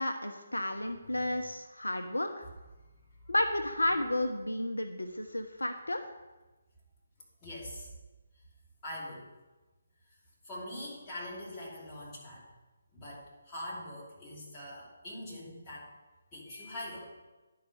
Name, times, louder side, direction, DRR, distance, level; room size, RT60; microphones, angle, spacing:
voice 1, 0.0-2.5 3.3-6.0, left 1 dB, 80° left, 7 dB, 0.7 m, -32 dB
voice 2, 7.4-7.9 8.8-9.3 10.4-12.4 12.9-15.9 16.3-17.1, left 1 dB, 15° left, -7 dB, 2.8 m, -43 dB
10.0 x 4.7 x 6.4 m, 1.1 s
figure-of-eight pair, 145°, 0 cm